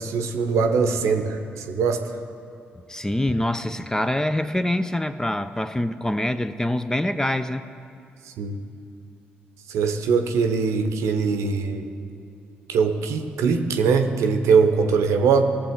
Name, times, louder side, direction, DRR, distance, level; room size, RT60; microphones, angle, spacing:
voice 1, 0.0-2.2 8.2-8.6 9.7-11.9 12.7-15.4, right 5 dB, 70° right, 6 dB, 0.8 m, -22 dB
voice 2, 2.8-7.6, left 1 dB, 10° left, 11 dB, 0.5 m, -25 dB
18.5 x 7.0 x 3.7 m, 2.6 s
hypercardioid pair, 40°, 5 cm